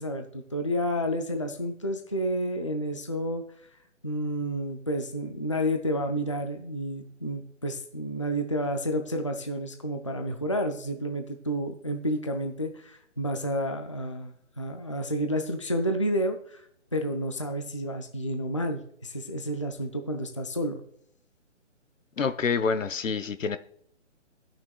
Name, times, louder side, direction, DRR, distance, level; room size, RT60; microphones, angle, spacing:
voice 1, 0.0-3.4 4.0-16.6 16.9-20.8, equal, 25° left, 0.4 m, -30 dB
voice 2, 22.2-23.6, left 5 dB, 85° left, 0.8 m, -27 dB
16.5 x 5.9 x 2.3 m
hypercardioid pair, 155°, 38 cm